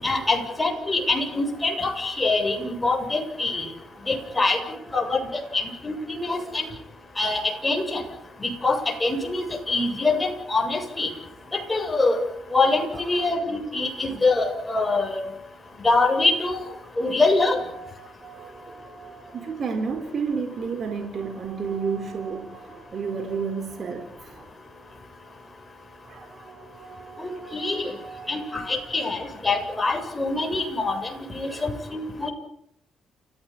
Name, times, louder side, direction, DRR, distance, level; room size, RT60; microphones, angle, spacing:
voice 1, 0.0-3.7 4.1-4.6 4.9-6.7 7.2-8.0 8.4-11.1 11.5-12.2 12.5-15.3 15.8-16.6 17.0-17.6 27.2-27.9 28.3-31.0 31.3-32.3, left 3 dB, 20° left, 4 dB, 7.5 m, -24 dB
voice 2, 4.0-5.6 6.1-6.6 12.9-13.3 13.9-14.1 17.0-17.1 17.5-24.5 26.0-29.1 31.5-31.8, right 5 dB, 50° right, 6 dB, 4.3 m, -34 dB
29.5 x 16.0 x 8.8 m, 0.75 s
cardioid pair, 90°, 0 cm